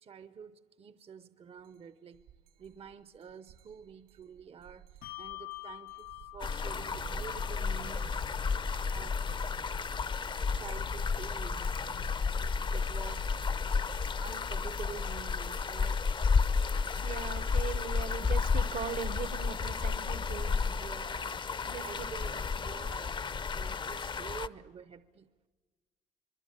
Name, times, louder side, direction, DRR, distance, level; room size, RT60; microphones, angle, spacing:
voice 1, 0.0-2.2 2.6-8.3 8.8-9.4 10.4-11.9 12.6-13.5 14.2-16.2 20.4-21.5 21.8-25.3, right 7 dB, 35° right, 13 dB, 0.8 m, -48 dB
sound 1, 1.6-1.8 2.1-14.0, right 9 dB, 80° right, 2.8 m, -53 dB
Bell, 5.0-11.9, left 24 dB, 65° left, 0.7 m, -50 dB
sound 2, 6.4-24.5, left 5 dB, 30° left, 0.7 m, -32 dB
voice 2, 17.0-20.7 21.6-22.1 22.3-22.4, right 7 dB, 55° right, 16 dB, 1.1 m, -40 dB
25.0 x 23.0 x 9.0 m, 1.3 s
cardioid pair, 110°, 17 cm